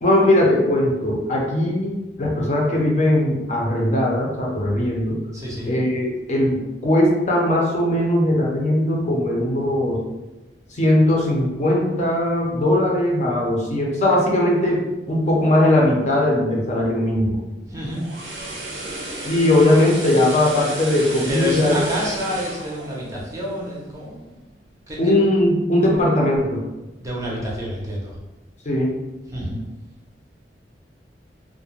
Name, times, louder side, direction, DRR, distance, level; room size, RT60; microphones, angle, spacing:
voice 1, 0.0-5.2 5.7-10.0 10.7-17.4 19.2-21.7 25.0-26.6 28.7-28.9, left 1 dB, 40° left, -2 dB, 0.5 m, -19 dB
voice 2, 5.3-5.8 17.6-18.1 21.3-24.3 24.9-25.1 27.0-28.2 29.2-29.6, equal, 20° right, -4 dB, 0.5 m, -28 dB
sound 1, 17.7-23.9 24.3-24.5, right 2 dB, 80° right, 0.6 m, -33 dB
2.3 x 2.1 x 3.0 m, 1.1 s
head